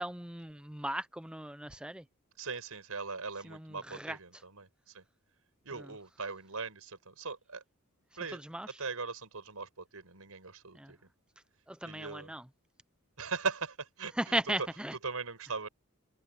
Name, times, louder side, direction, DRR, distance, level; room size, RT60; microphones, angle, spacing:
voice 1, 0.0-2.0 3.4-4.2 5.8-5.9 8.3-8.7 10.8-10.9 11.7-12.4 14.2-14.9, right 1 dB, 5° right, 0.6 m, -37 dB
voice 2, 2.4-5.0 5.6-7.6 8.2-8.4 8.8-11.1 11.8-12.3 13.2-14.4 15.0-15.7, right 4 dB, 90° right, 4.9 m, -40 dB
head